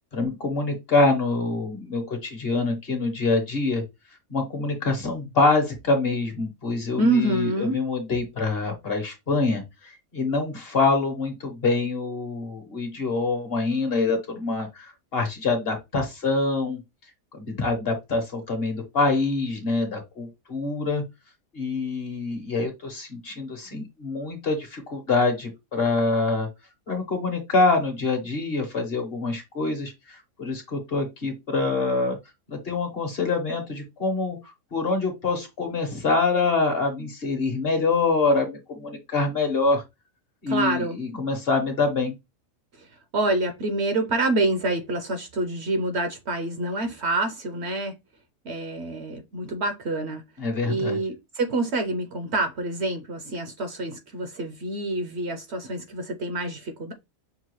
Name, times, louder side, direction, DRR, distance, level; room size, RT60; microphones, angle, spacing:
voice 1, 0.1-3.8 4.3-9.6 10.1-16.8 17.3-21.0 21.5-26.5 26.9-32.2 32.5-34.4 34.7-39.8 40.4-42.1 50.4-51.0, left 3 dB, 45° left, 1.2 m, -25 dB
voice 2, 7.0-7.8 40.5-41.0 42.7-48.0 48.4-50.2 50.6-56.9, right 2 dB, 55° right, 0.9 m, -27 dB
6.1 x 2.3 x 3.0 m
omnidirectional pair, 1.5 m